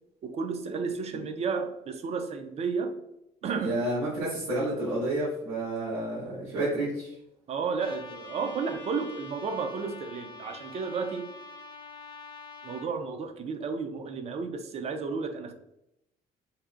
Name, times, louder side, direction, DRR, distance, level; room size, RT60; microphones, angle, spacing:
voice 1, 0.2-3.0 3.4-3.8 7.5-11.3 12.6-15.5, right 5 dB, 40° right, 7 dB, 0.4 m, -32 dB
voice 2, 3.6-7.1, right 1 dB, 85° right, -8 dB, 0.9 m, -30 dB
Trumpet, 7.8-12.9, left 3 dB, 30° left, 0.4 m, -45 dB
2.7 x 2.1 x 2.3 m, 0.85 s
cardioid pair, 110°, 17 cm